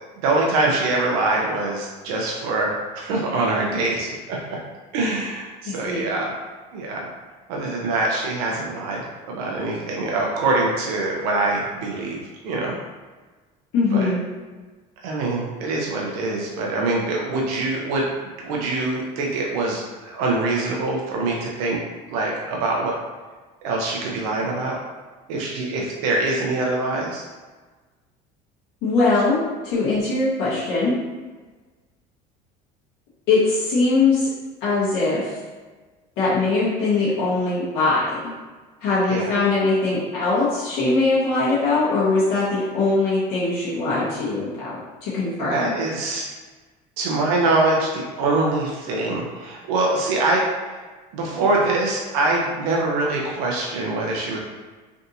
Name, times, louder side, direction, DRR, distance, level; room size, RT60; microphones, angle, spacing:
voice 1, 0.0-4.6 4.9-6.3 6.7-7.1 7.5-9.0 9.3-12.2 12.4-12.8 13.9-14.1 15.0-18.1 18.4-21.8 22.1-22.9 23.6-24.8 25.3-27.2 39.1-39.3 45.4-46.3 47.0-50.5 51.1-54.4, right 2 dB, 85° right, -2 dB, 0.6 m, -24 dB
voice 2, 5.7-6.0 13.7-14.2 28.8-30.9 33.3-34.3 34.6-35.3 36.2-38.3 38.8-45.6, left 3 dB, 70° left, -10 dB, 1.2 m, -21 dB
3.4 x 2.6 x 2.7 m, 1.3 s
supercardioid pair, 95°, 19 cm